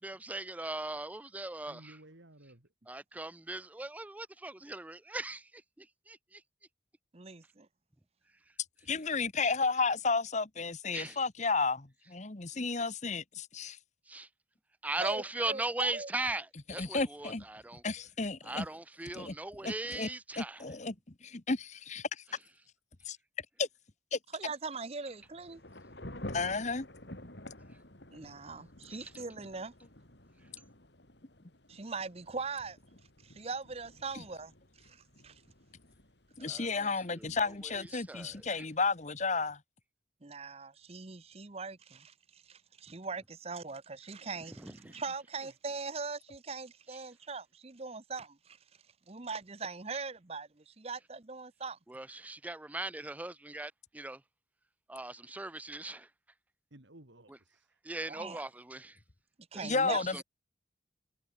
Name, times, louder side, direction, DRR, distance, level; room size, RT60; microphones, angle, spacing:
voice 1, 0.0-2.0 2.9-5.5 5.8-6.4 10.9-11.2 14.1-14.3 14.8-17.8 18.4-20.6 28.9-29.1 36.4-37.3 37.6-38.7 44.6-45.0 49.9-50.0 51.9-54.2 54.9-56.1 57.3-57.4 57.8-59.0 59.5-60.2, right 2 dB, 10° right, 0.4 m, -39 dB
voice 2, 1.7-2.7 44.2-45.0 45.4-45.5 56.7-57.8, right 1 dB, 65° right, 2.7 m, -57 dB
voice 3, 7.1-7.7 15.0-16.1 24.3-25.6 28.1-29.7 31.7-32.8 33.2-34.5 34.8-35.4 36.5-36.6 40.2-48.6 49.1-51.8 58.1-58.4 59.5-60.2, right 4 dB, 30° right, 0.9 m, -41 dB
voice 4, 8.9-13.8 16.8-17.4 17.8-18.7 19.1-19.3 19.6-20.1 20.4-20.9 21.2-22.1 23.1-23.2 23.6-23.7 24.1-24.2 26.3-26.9 34.1-34.2 36.4-39.6 59.6-60.2, left 4 dB, 35° left, 1.2 m, -32 dB
Thunder / Rain, 25.1-39.6, left 1 dB, 60° left, 4.0 m, -51 dB
head